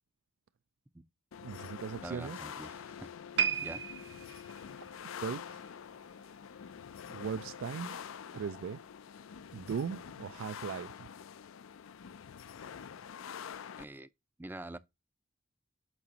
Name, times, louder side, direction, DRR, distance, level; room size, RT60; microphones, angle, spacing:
sound 1, 1.3-13.8, left 7 dB, 85° left, 0.4 m, -46 dB
voice 1, 1.4-2.4 5.2-5.6 7.1-8.0 8.3-8.8 9.5-11.1, right 6 dB, 80° right, 0.3 m, -38 dB
voice 2, 2.0-3.1 3.6-3.8 13.8-14.1 14.4-14.8, right 1 dB, 10° right, 0.4 m, -45 dB
sound 2, 3.4-6.7 7.0-7.2 7.9-8.0, right 7 dB, 55° right, 0.8 m, -36 dB
8.7 x 5.9 x 2.8 m
head